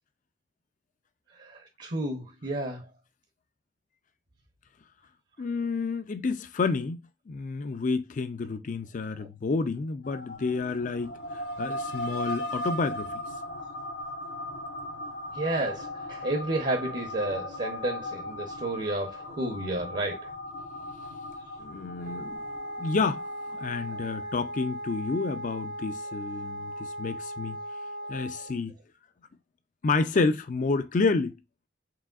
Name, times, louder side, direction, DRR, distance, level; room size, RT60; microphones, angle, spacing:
voice 1, 1.3-2.9 9.2-9.3 15.3-20.3, right 2 dB, 45° right, 0.7 m, -31 dB
voice 2, 5.4-7.0 7.3-13.2 21.6-22.4 22.8-23.2 23.6-27.6 28.1-28.8 29.8-31.4, left 4 dB, 45° left, 0.4 m, -29 dB
sound 1, 10.0-24.0, left 1 dB, 85° left, 0.9 m, -38 dB
Wind instrument woodwind instrument, 22.0-28.6, equal, 65° right, 1.2 m, -38 dB
4.8 x 3.3 x 2.3 m
head